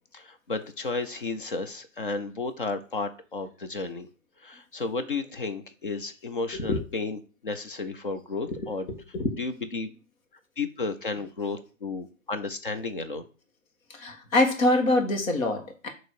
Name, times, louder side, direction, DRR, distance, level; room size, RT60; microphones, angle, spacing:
voice 1, 0.1-4.1 4.4-8.9 9.4-9.9 10.6-13.2, left 3 dB, 40° left, 9 dB, 0.5 m, -33 dB
voice 2, 6.5-6.8 8.5-9.3 13.9-15.9, left 2 dB, 90° left, 4 dB, 1.7 m, -25 dB
6.7 x 3.0 x 4.5 m, 0.36 s
hypercardioid pair, 180°, 40 cm